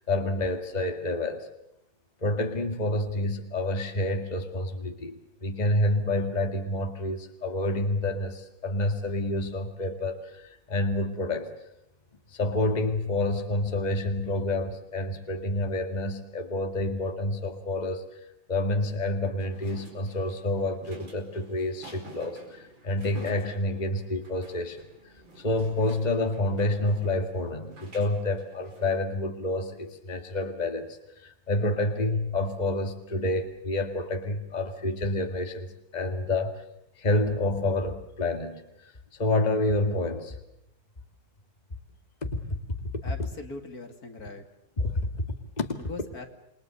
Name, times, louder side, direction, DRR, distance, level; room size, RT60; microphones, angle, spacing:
voice 1, 0.1-1.5 2.2-11.5 12.3-18.2 18.5-24.8 25.4-30.9 31.2-36.6 37.0-38.6 39.1-40.4 42.2-43.0 44.8-45.8, left 2 dB, 20° left, 5 dB, 2.1 m, -28 dB
sound 1, 19.4-29.0, right 2 dB, 90° right, 5.6 m, -50 dB
voice 2, 43.0-44.4 45.8-46.3, left 3 dB, 50° left, 5 dB, 2.7 m, -40 dB
28.5 x 22.5 x 6.8 m, 0.79 s
omnidirectional pair, 2.0 m